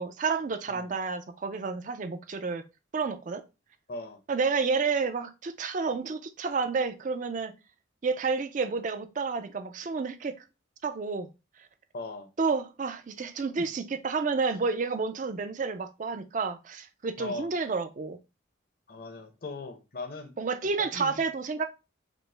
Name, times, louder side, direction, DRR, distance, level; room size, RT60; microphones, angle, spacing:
voice 1, 0.0-2.6 2.9-3.4 4.3-7.5 8.0-10.4 10.8-11.3 12.4-18.2 20.4-21.7, right 4 dB, 40° right, 0.4 m, -30 dB
voice 2, 3.9-4.2 11.9-12.3 13.6-13.7 17.2-17.5 18.9-20.4 20.8-21.2, left 2 dB, 50° left, 0.6 m, -39 dB
5.1 x 2.0 x 3.2 m
head